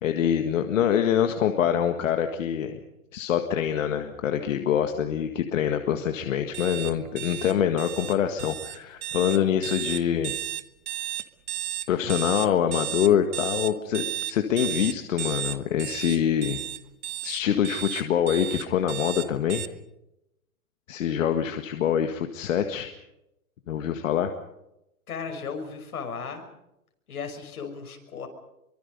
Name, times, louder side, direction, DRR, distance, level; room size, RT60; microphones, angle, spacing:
voice 1, 0.0-2.8 3.1-10.3 11.9-16.6 17.2-19.6 20.9-22.9 23.7-24.3, left 9 dB, 60° left, 6 dB, 1.9 m, -25 dB
sound 1, 6.5-19.7, right 13 dB, 30° right, 0.8 m, -33 dB
voice 2, 25.1-26.4 27.1-28.3, left 5 dB, 75° left, 5 dB, 6.2 m, -35 dB
25.5 x 24.5 x 5.4 m, 0.86 s
hypercardioid pair, 155°, 44 cm